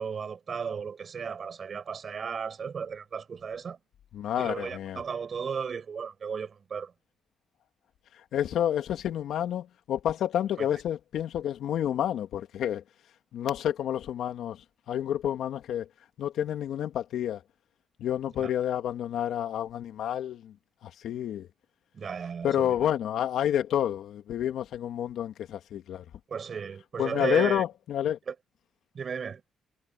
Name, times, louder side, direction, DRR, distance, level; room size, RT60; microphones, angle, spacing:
voice 1, 0.0-3.8 4.4-6.9 10.6-10.7 18.4-18.5 21.9-22.8 26.3-27.6 28.3-28.4 28.9-29.4, right 6 dB, 45° right, 7.4 m, -35 dB
voice 2, 4.1-5.0 8.3-12.8 13.3-14.6 14.9-15.9 16.2-17.4 18.0-20.5 20.8-21.5 22.4-26.0 27.0-28.2, left 10 dB, 75° left, 2.8 m, -29 dB
cardioid pair, 90°, 0 cm